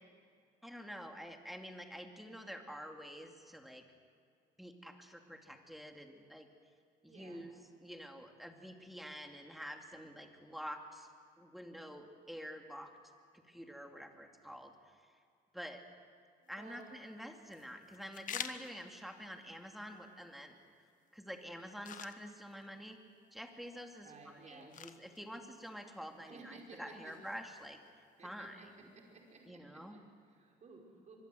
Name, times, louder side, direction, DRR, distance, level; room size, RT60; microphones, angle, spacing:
voice 1, 0.6-3.8 4.6-6.5 7.0-7.5 7.8-11.1 11.4-12.9 13.5-15.0 15.5-15.8 16.5-20.5 21.1-23.0 23.3-28.6 29.5-30.0, equal, ahead, 4 dB, 2.7 m, -48 dB
voice 2, 7.0-7.4 13.9-14.2 16.4-16.9 24.0-24.7 26.2-27.1 28.2-28.7 28.9-31.2, right 4 dB, 45° right, 0 dB, 5.4 m, -56 dB
sound 1, 16.4-29.5, left 8 dB, 50° left, 1.3 m, -53 dB
24.5 x 22.5 x 8.1 m, 2.2 s
cardioid pair, 110°, 17 cm